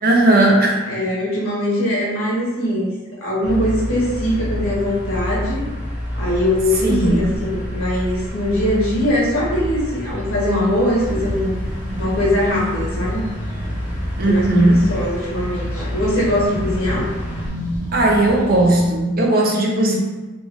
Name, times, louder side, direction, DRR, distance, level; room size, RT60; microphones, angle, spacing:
voice 1, 0.0-0.9 6.8-7.3 14.2-14.8 17.9-20.0, right 1 dB, 45° right, -1 dB, 0.6 m, -16 dB
voice 2, 0.9-2.9 3.2-5.6 6.1-11.6 12.0-13.2 14.2-17.1, left 1 dB, 90° left, -5 dB, 1.4 m, -21 dB
sound 1, 3.4-17.5, left 1 dB, 5° right, 0.9 m, -28 dB
sound 2, 11.0-18.9, equal, 35° left, 1.2 m, -30 dB
3.8 x 2.4 x 3.5 m, 1.1 s
head